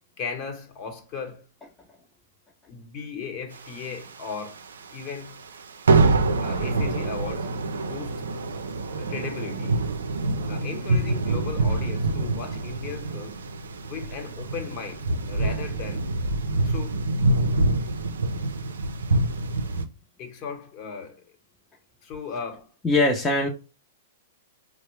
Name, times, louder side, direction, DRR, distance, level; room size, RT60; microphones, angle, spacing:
voice 1, 0.2-1.4 2.7-4.6 4.9-5.4 6.4-8.3 9.0-9.8 10.5-13.4 13.9-16.0 16.6-17.1 20.2-21.4 22.0-22.7, left 6 dB, 45° left, 1.1 m, -37 dB
sound 1, 3.7-4.6 4.9-5.1 5.4-5.6 5.9-19.9, right 2 dB, 85° right, 0.4 m, -25 dB
voice 2, 22.8-23.5, left 2 dB, 15° left, 0.7 m, -21 dB
4.4 x 2.1 x 3.2 m
hypercardioid pair, 120°, 0 cm